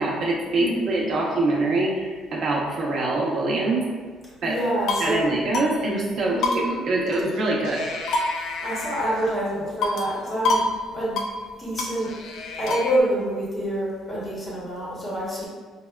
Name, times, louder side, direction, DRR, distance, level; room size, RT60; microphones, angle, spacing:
voice 1, 0.0-3.9 4.4-4.6 5.0-7.9, right 2 dB, 45° right, -3 dB, 0.6 m, -24 dB
voice 2, 0.6-1.0 4.4-5.4 6.3-6.8 8.6-10.6 10.9-11.2 11.5-12.1 12.6-15.5, right 1 dB, 15° left, -7 dB, 0.9 m, -27 dB
sound 1, 4.6-5.2 5.5-5.7 6.0-6.1 6.4-7.4 7.6-9.4 9.8-10.2 10.4-10.7 11.0-11.3 11.8-13.0, left 2 dB, 60° left, 0.4 m, -27 dB
5.6 x 2.1 x 2.2 m, 1.5 s
cardioid pair, 170°, 0 cm